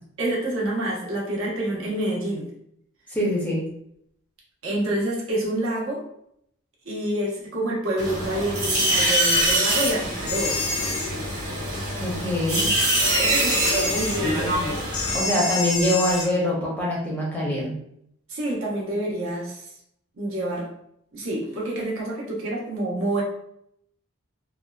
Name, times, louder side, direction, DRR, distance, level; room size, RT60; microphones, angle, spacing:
voice 1, 0.2-2.5 4.6-6.0 6.8-10.6 12.9-14.5 18.3-19.7 20.2-20.7 21.1-23.2, right 1 dB, 70° right, -4 dB, 0.8 m, -27 dB
voice 2, 3.1-3.6 12.0-12.7 15.1-17.8, left 1 dB, 5° left, -5 dB, 0.5 m, -24 dB
sound 1, 8.0-15.2, right 1 dB, 90° right, 1.3 m, -24 dB
sound 2, 10.3-11.1 13.5-14.2 14.9-16.3, left 3 dB, 75° left, 0.5 m, -27 dB
2.7 x 2.2 x 2.2 m, 0.73 s
head